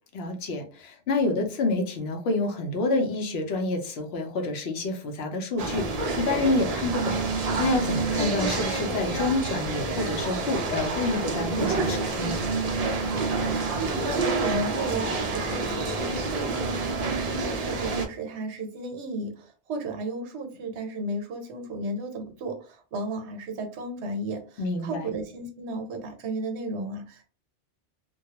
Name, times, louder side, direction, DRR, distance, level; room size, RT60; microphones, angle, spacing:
voice 1, 0.1-12.4 24.6-25.1, left 2 dB, 70° left, 3 dB, 0.8 m, -28 dB
sound 1, 5.6-18.1, right 3 dB, 55° right, 0.4 m, -28 dB
voice 2, 13.0-27.3, right 2 dB, 80° right, 4 dB, 0.9 m, -34 dB
2.2 x 2.2 x 2.8 m, 0.38 s
omnidirectional pair, 1.1 m